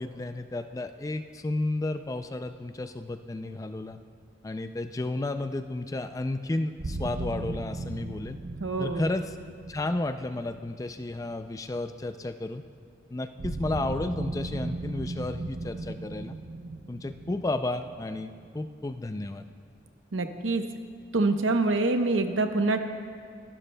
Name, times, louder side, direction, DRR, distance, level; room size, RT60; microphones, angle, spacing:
voice 1, 0.0-4.0 4.4-8.4 8.8-9.4 9.7-12.6 13.1-16.4 16.9-19.5, left 2 dB, 15° left, 9 dB, 0.3 m, -32 dB
sound 1, 6.8-11.7 13.4-19.0, right 2 dB, 65° right, 0.6 m, -37 dB
voice 2, 8.6-9.0 20.1-20.6 21.1-22.8, right 3 dB, 90° right, 7 dB, 0.8 m, -25 dB
23.0 x 12.0 x 2.2 m, 2.3 s
head